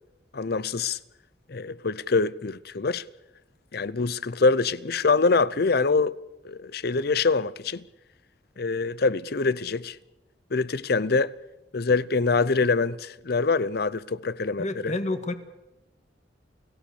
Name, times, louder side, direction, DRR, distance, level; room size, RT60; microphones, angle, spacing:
voice 1, 0.3-1.0 1.5-3.0 3.7-6.2 6.4-7.8 8.6-10.0 10.5-11.3 11.7-14.9, left 4 dB, 60° left, 0.7 m, -24 dB
voice 2, 14.6-15.3, left 2 dB, 40° left, 1.8 m, -29 dB
29.5 x 16.0 x 7.0 m
head